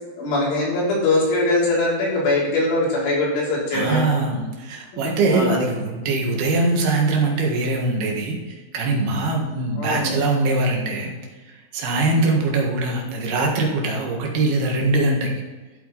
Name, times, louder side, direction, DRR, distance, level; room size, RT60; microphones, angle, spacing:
voice 1, 0.2-4.0 4.9-5.0 5.3-5.6 9.8-10.2, left 2 dB, 75° left, -5 dB, 5.8 m, -22 dB
voice 2, 3.7-11.1 11.7-15.3, right 2 dB, 60° right, 0 dB, 3.3 m, -22 dB
14.0 x 8.2 x 4.1 m, 1.2 s
omnidirectional pair, 5.6 m